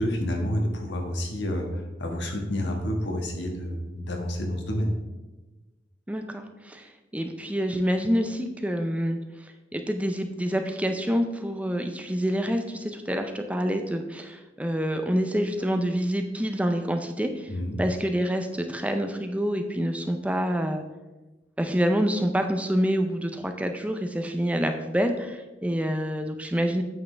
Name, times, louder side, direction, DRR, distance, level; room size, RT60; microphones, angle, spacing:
voice 1, 0.0-5.0 17.5-17.8, equal, 75° left, 2 dB, 1.4 m, -29 dB
voice 2, 6.1-17.5 17.8-20.8 21.6-26.8, equal, 5° right, 5 dB, 0.4 m, -27 dB
8.7 x 6.4 x 3.3 m, 1.1 s
head